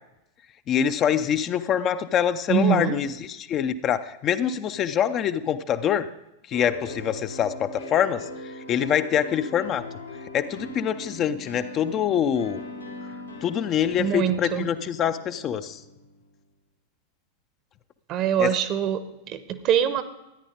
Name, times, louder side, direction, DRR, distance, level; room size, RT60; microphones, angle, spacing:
voice 1, 0.7-3.1 3.5-6.1 6.5-8.3 8.7-9.8 10.3-12.6 13.4-15.8 18.4-18.5, left 9 dB, 30° left, 10 dB, 0.5 m, -24 dB
voice 2, 2.5-3.0 14.0-14.7 18.1-20.0, right 9 dB, 35° right, 13 dB, 0.9 m, -24 dB
sound 1, 6.5-16.3, left 2 dB, 80° left, 2.6 m, -40 dB
13.5 x 9.9 x 5.2 m, 0.93 s
figure-of-eight pair, 90°, 0 cm